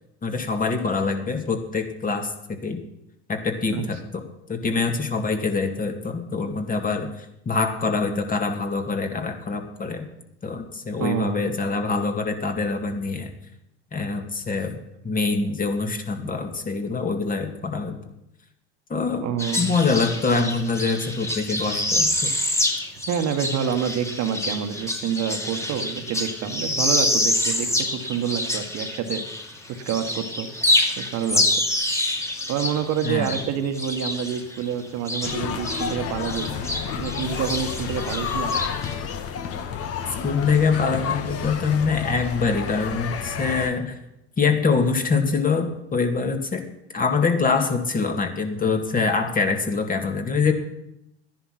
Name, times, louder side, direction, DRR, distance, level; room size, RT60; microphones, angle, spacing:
voice 1, 0.2-2.8 3.3-4.2 4.5-10.1 10.4-13.3 13.9-14.8 15.0-18.0 18.9-19.3 19.6-22.3 33.0-33.4 40.2-44.0 44.4-46.7 46.9-50.5, left 4 dB, 25° left, 5 dB, 2.1 m, -24 dB
voice 2, 11.0-11.6 19.2-19.7 23.1-29.2 29.7-30.5 31.0-31.4 32.5-36.6 37.0-38.5, right 8 dB, 55° right, 6 dB, 1.6 m, -27 dB
sound 1, 19.4-29.6 29.9-36.0 36.2-38.9, left 1 dB, 10° left, 2.3 m, -26 dB
sound 2, 35.2-43.7, left 7 dB, 45° left, 1.6 m, -30 dB
13.0 x 10.5 x 5.9 m, 0.84 s
hypercardioid pair, 85°, 32 cm